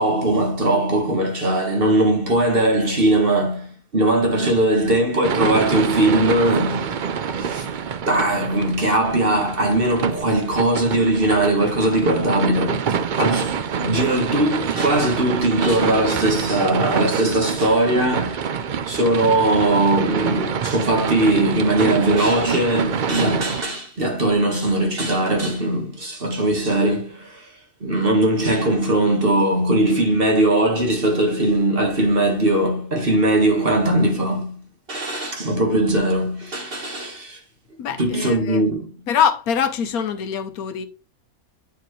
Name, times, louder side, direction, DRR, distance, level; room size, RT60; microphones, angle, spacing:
voice 1, 0.0-7.7 8.1-18.6 18.9-27.5 27.8-34.6 34.9-37.4 38.0-38.9, right 1 dB, 40° right, 1.8 m, -20 dB
sound 1, 5.2-23.6, right 7 dB, 70° right, 0.4 m, -26 dB
voice 2, 37.8-38.6 39.1-40.9, left 7 dB, 80° left, 1.3 m, -23 dB
9.0 x 4.6 x 3.1 m
omnidirectional pair, 1.5 m